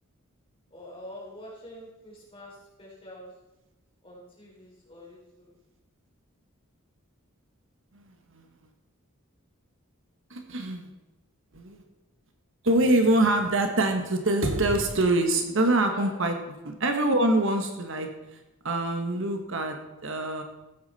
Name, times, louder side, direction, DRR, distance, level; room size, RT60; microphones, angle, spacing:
voice 1, 0.7-3.3 4.0-5.5 15.9-16.3, left 1 dB, 25° left, -4 dB, 4.3 m, -45 dB
voice 2, 7.9-8.4 10.3-10.9 11.5-11.8 12.6-16.3 16.6-18.4 18.6-19.8 20.0-20.4, right 1 dB, 60° right, 5 dB, 1.3 m, -25 dB
14.5 x 8.8 x 4.1 m, 0.99 s
head